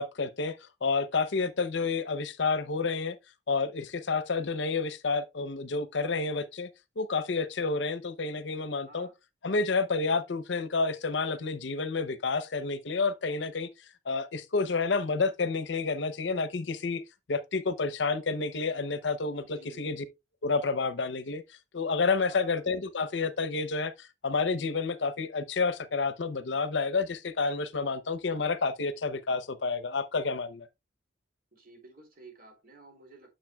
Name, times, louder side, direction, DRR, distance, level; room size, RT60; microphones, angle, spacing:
voice 1, 0.0-3.2 3.5-6.7 7.0-9.1 9.4-13.7 14.1-17.0 17.3-20.0 20.4-21.4 21.7-30.7, left 4 dB, 75° left, 0.7 m, -29 dB
voice 2, 19.4-20.0 22.3-22.6 31.5-33.4, right 2 dB, 50° right, 3.1 m, -53 dB
8.9 x 7.0 x 2.3 m
head